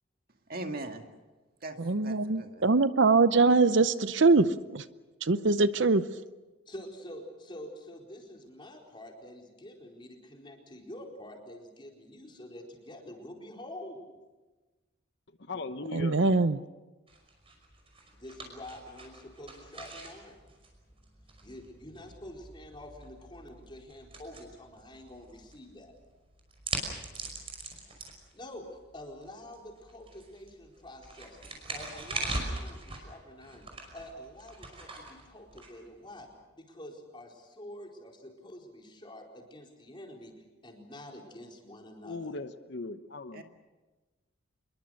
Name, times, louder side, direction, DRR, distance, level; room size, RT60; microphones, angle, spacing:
voice 1, 0.5-1.0 1.6-1.8 2.0-2.6 43.3-43.4, right 2 dB, 50° right, 4 dB, 2.1 m, -39 dB
voice 2, 1.8-4.9 5.2-6.1 15.9-16.6, right 3 dB, 65° right, 13 dB, 0.7 m, -23 dB
voice 3, 6.7-14.1 18.2-20.4 21.4-25.9 28.3-28.7 28.9-31.4 31.7-33.7 33.9-36.3 36.6-40.3 40.6-42.4, left 1 dB, 25° left, 0 dB, 4.4 m, -47 dB
voice 4, 15.4-16.2 42.0-43.4, left 3 dB, 60° left, 10 dB, 1.0 m, -38 dB
sound 1, 17.1-36.3, right 2 dB, 30° right, 5.5 m, -42 dB
26.5 x 22.5 x 6.6 m, 1.2 s
head